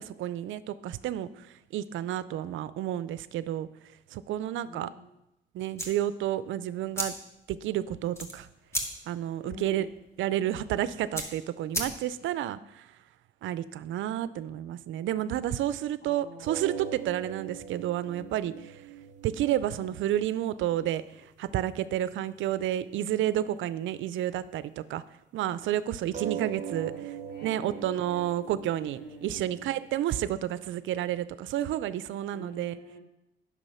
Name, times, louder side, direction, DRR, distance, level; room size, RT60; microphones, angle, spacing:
voice 1, 0.0-3.7 4.1-4.9 5.5-7.1 7.5-8.5 9.1-9.9 10.2-12.9 13.4-18.8 19.2-25.0 25.3-26.9 27.4-32.8, right 12 dB, 80° right, 16 dB, 0.5 m, -30 dB
voice 2, 4.6-5.0 9.4-9.9 16.0-16.8 18.2-18.4 26.6-28.3 28.6-29.7 32.3-33.0, left 1 dB, 60° left, -1 dB, 2.8 m, -47 dB
sound 1, 5.7-12.4, equal, 15° left, 1.8 m, -38 dB
sound 2, 16.4-21.6 21.8-21.9 22.3-22.4 22.8-22.9 26.1-30.3, right 10 dB, 40° right, 0.8 m, -41 dB
9.0 x 6.2 x 5.6 m, 0.88 s
cardioid pair, 90°, 20 cm